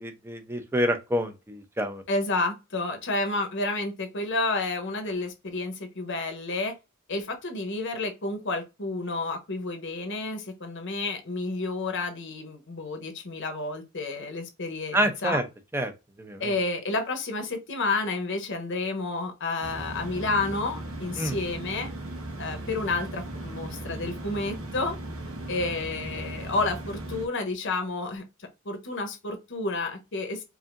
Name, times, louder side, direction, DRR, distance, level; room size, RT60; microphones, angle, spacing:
voice 1, 0.0-2.0 14.9-15.4 15.7-15.9 16.2-16.4 21.2-21.4, equal, 10° right, 0.7 m, -27 dB
voice 2, 2.1-6.7 7.1-15.4 16.4-21.9 22.4-24.9 25.5-30.4, left 3 dB, 60° left, 1.0 m, -30 dB
sound 1, 19.6-27.3, right 1 dB, 85° right, 1.0 m, -37 dB
4.9 x 2.7 x 2.6 m
head